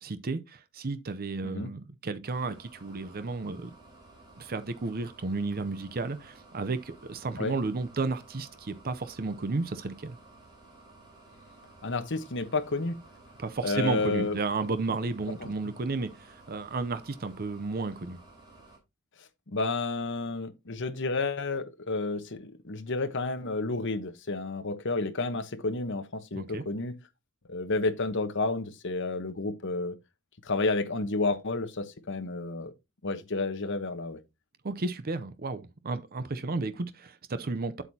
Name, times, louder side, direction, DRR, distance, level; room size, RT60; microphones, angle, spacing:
voice 1, 0.0-3.7 4.4-10.2 13.4-18.2 26.3-26.6 34.6-37.8, right 3 dB, 40° right, 0.6 m, -33 dB
sound 1, 2.2-18.8, right 2 dB, 20° right, 4.0 m, -54 dB
voice 2, 11.8-13.0 13.6-14.4 15.4-15.5 19.5-27.0 27.5-30.0 30.4-32.7 33.0-34.2, left 3 dB, 55° left, 1.1 m, -31 dB
8.1 x 8.0 x 2.8 m
head